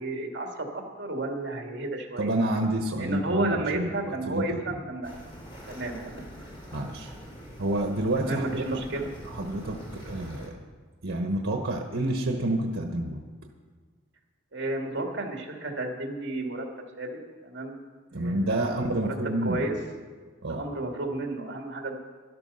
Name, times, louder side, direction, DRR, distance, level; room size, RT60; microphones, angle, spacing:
voice 1, 0.0-2.6 3.0-5.1 5.7-6.4 8.2-9.1 14.5-16.7 17.0-17.1 17.4-17.7 18.1-18.7 19.0-19.8 20.5-22.0, right 2 dB, 60° right, 2 dB, 2.3 m, -32 dB
voice 2, 2.2-4.8 6.7-7.1 7.6-8.6 9.3-10.5 11.0-13.2 18.1-19.6 20.4-20.6, right 1 dB, 80° right, 3 dB, 1.2 m, -29 dB
sound 1, 5.0-10.5, equal, 25° left, 3.0 m, -44 dB
12.5 x 12.0 x 5.6 m, 1.5 s
head